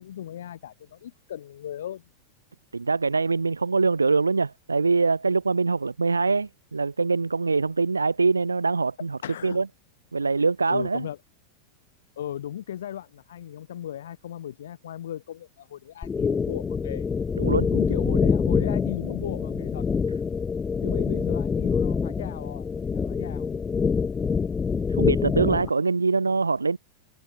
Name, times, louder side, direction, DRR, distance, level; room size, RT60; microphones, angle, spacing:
voice 1, 0.0-2.0 9.2-9.6 10.7-11.2 12.2-17.1 17.7-19.9 20.8-23.5, left 11 dB, 60° left, 6.0 m, -36 dB
voice 2, 2.7-9.7 10.1-11.1 17.4-17.7 24.9-26.8, right 4 dB, 80° right, 1.4 m, -24 dB
sound 1, 16.0-25.7, left 5 dB, 15° left, 0.6 m, -25 dB
figure-of-eight pair, 90°, 0 cm